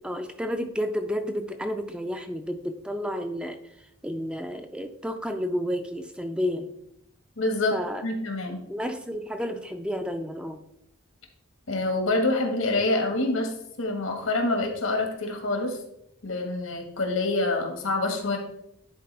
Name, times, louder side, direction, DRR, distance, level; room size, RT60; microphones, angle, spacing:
voice 1, 0.0-3.6 4.0-6.7 7.7-8.0 8.7-10.6, equal, 5° right, 7 dB, 0.3 m, -31 dB
voice 2, 7.4-7.8 8.0-8.6 11.7-13.5 13.8-15.8 16.2-18.4, left 2 dB, 90° left, 3 dB, 1.6 m, -26 dB
10.0 x 4.3 x 3.3 m, 0.79 s
head